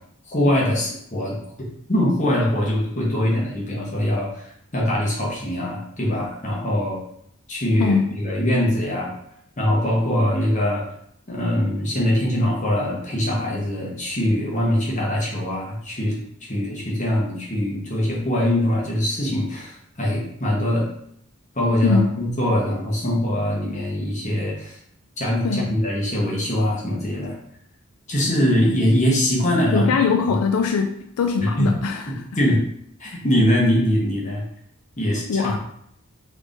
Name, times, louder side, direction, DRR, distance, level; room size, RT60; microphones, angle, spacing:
voice 1, 0.3-7.0 7.5-9.1 9.6-10.8 11.3-20.9 21.5-24.8 25.2-27.4 28.1-29.9 31.4-31.7 32.3-32.6 33.0-34.4 35.0-35.6, equal, 35° left, -4 dB, 1.0 m, -22 dB
voice 2, 21.8-22.1 25.4-25.7 29.7-32.1 35.3-35.6, left 5 dB, 75° left, 4 dB, 0.3 m, -21 dB
3.7 x 3.1 x 2.5 m, 0.71 s
head